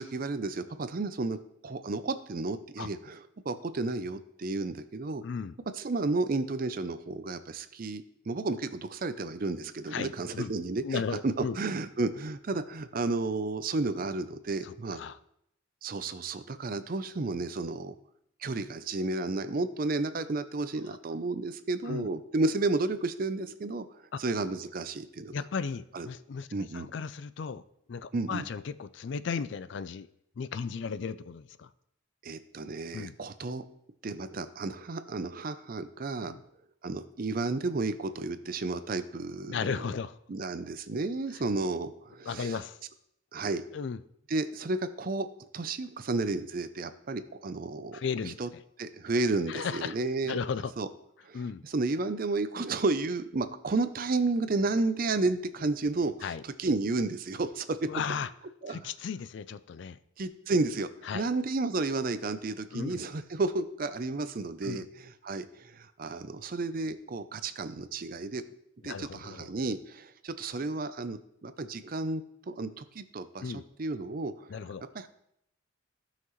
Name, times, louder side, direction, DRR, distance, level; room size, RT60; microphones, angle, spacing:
voice 1, 0.0-1.4 1.6-5.2 5.7-15.0 15.8-18.0 18.4-23.9 24.2-25.4 25.9-26.1 26.5-26.9 28.1-28.4 32.2-33.6 34.0-36.3 36.8-39.8 40.3-42.6 43.3-43.6 44.3-45.3 45.5-48.0 48.2-48.5 48.8-50.4 50.8-50.9 51.3-57.8 58.6-58.8 60.2-68.4 68.8-74.5 74.9-75.1, right 3 dB, 45° right, 11 dB, 0.5 m, -32 dB
voice 2, 5.2-5.5 9.9-10.5 10.8-11.6 14.6-15.2 20.9-21.0 21.9-22.1 24.1-24.2 25.3-27.6 27.9-30.1 30.4-31.7 32.9-33.2 36.3-36.4 39.5-40.2 42.3-42.8 43.7-44.0 47.9-48.6 49.5-50.0 50.2-50.7 51.3-51.6 56.2-56.4 57.9-58.3 58.7-60.0 61.1-61.3 62.7-63.0 64.6-64.9 68.8-69.5 73.4-73.7 74.5-74.8, left 6 dB, 60° left, 14 dB, 0.4 m, -35 dB
15.5 x 5.8 x 3.1 m, 0.75 s
head